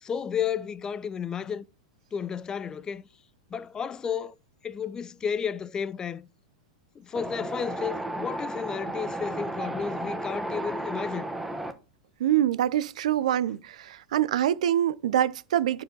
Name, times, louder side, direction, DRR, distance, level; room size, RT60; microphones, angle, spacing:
voice 1, 0.0-1.6 2.1-3.0 3.5-4.4 4.6-6.3 7.0-11.3, left 7 dB, 20° left, 0.4 m, -32 dB
Wind, 7.1-11.7, right 1 dB, 5° right, 1.0 m, -33 dB
voice 2, 12.2-15.8, right 11 dB, 75° right, 0.5 m, -25 dB
9.0 x 4.9 x 3.9 m
hypercardioid pair, 130°, 4 cm